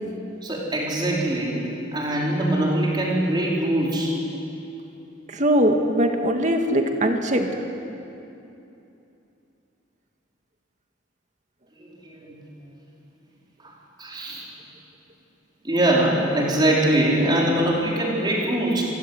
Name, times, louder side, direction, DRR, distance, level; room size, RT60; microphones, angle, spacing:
voice 1, 0.4-1.7 1.9-4.2 11.8-12.4 13.6-14.5 15.6-18.8, right 1 dB, 25° right, -3 dB, 5.0 m, -23 dB
voice 2, 5.3-7.5, equal, 40° right, 4 dB, 2.1 m, -21 dB
27.5 x 16.0 x 9.4 m, 2.8 s
head